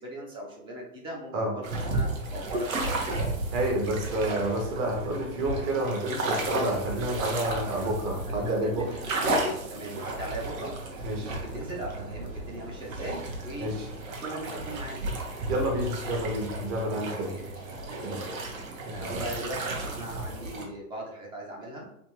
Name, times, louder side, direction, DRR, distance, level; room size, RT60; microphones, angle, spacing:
voice 1, 0.0-3.1 7.5-7.9 8.3-9.1 9.4-13.7 14.2-15.0 17.1-17.4 17.9-18.6 18.9-21.9, right 1 dB, 10° right, -1 dB, 0.4 m, -39 dB
sound 1, 1.6-20.6, right 2 dB, 65° right, 1.2 m, -33 dB
voice 2, 3.5-8.9 11.0-11.3 13.6-13.9 15.5-17.3 18.0-18.2 19.1-19.2, right 1 dB, 40° right, 0 dB, 1.3 m, -29 dB
3.4 x 2.9 x 3.0 m, 0.73 s
hypercardioid pair, 125°, 43 cm